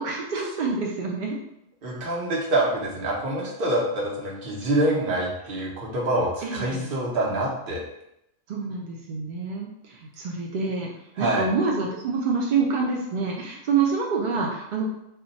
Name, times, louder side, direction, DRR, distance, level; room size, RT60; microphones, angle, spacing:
voice 1, 0.0-1.4 6.4-6.9 8.5-10.9 11.2-14.9, right 4 dB, 70° right, -2 dB, 0.4 m, -27 dB
voice 2, 1.8-7.8 11.2-11.5, right 1 dB, 50° right, -4 dB, 0.9 m, -26 dB
2.4 x 2.2 x 3.9 m, 0.82 s
omnidirectional pair, 1.3 m